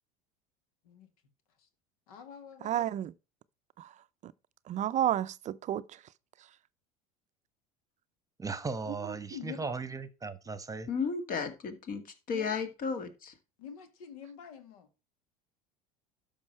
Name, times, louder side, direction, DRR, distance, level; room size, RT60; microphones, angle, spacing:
voice 1, 2.1-2.8 9.3-9.7 12.3-12.6 13.6-14.9, left 8 dB, 75° left, 1.8 m, -46 dB
voice 2, 2.6-3.1 3.8-3.9 4.7-5.8, right 11 dB, 40° right, 0.5 m, -30 dB
voice 3, 8.4-10.9, right 4 dB, 20° right, 1.1 m, -37 dB
voice 4, 10.9-12.0 12.3-13.3, left 5 dB, 50° left, 2.1 m, -33 dB
12.5 x 5.5 x 4.3 m
hypercardioid pair, 75°, 19 cm